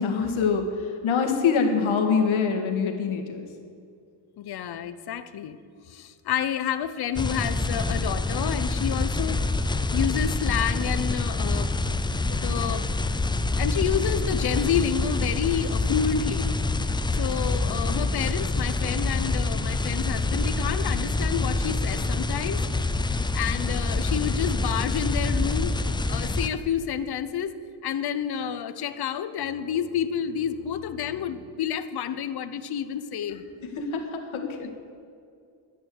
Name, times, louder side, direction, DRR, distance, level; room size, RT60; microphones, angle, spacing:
voice 1, 0.0-3.5 33.7-34.7, left 5 dB, 90° left, 4 dB, 1.9 m, -25 dB
voice 2, 4.4-5.6 5.9-11.7 12.3-12.9 13.5-16.5 17.2-22.6 23.3-25.7 26.1-27.6 27.8-33.4 34.4-34.5, left 8 dB, 55° left, 11 dB, 0.8 m, -29 dB
sound 1, 7.1-26.5, left 2 dB, 10° left, 0.4 m, -26 dB
12.5 x 9.0 x 7.8 m, 2.4 s
cardioid pair, 160°, 47 cm